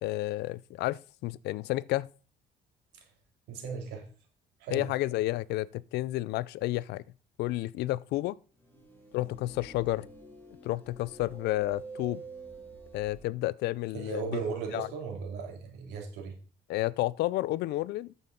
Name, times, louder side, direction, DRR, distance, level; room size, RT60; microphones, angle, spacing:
voice 1, 0.0-2.1 4.7-7.0 7.4-8.3 9.1-10.1 10.6-12.2 12.9-14.4 14.7-14.9 16.7-18.1, left 17 dB, 80° left, 0.4 m, -31 dB
voice 2, 3.5-4.1 4.6-4.8 13.9-16.4, right 5 dB, 90° right, 2.7 m, -36 dB
sound 1, 8.6-13.3, right 3 dB, 10° left, 2.4 m, -47 dB
8.9 x 7.6 x 3.8 m
cardioid pair, 110°, 17 cm